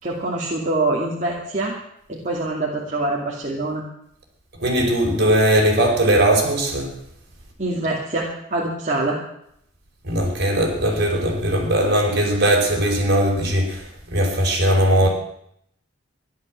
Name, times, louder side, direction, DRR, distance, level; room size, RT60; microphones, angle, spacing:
voice 1, 0.0-1.8 2.1-3.8 7.6-9.2 15.0-15.1, right 2 dB, 40° right, -4 dB, 2.7 m, -24 dB
voice 2, 4.6-6.9 10.0-13.8 14.1-15.1, right 1 dB, 55° right, 1 dB, 4.9 m, -19 dB
14.5 x 12.0 x 7.6 m, 0.73 s
head